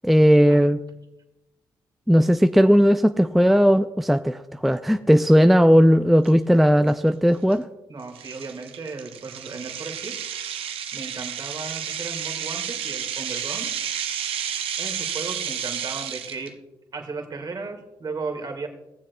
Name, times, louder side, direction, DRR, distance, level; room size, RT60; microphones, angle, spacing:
voice 1, 0.0-0.8 2.1-7.7, equal, ahead, 8 dB, 0.4 m, -17 dB
sound 1, 6.2-6.3 6.9-7.1 7.5-7.6 8.1-16.5, right 9 dB, 75° right, 0.7 m, -31 dB
voice 2, 7.9-10.1 10.9-13.7 14.8-16.5 16.9-18.7, right 4 dB, 45° right, 3 dB, 1.9 m, -35 dB
20.0 x 7.4 x 2.3 m, 0.95 s
supercardioid pair, 50°, 10 cm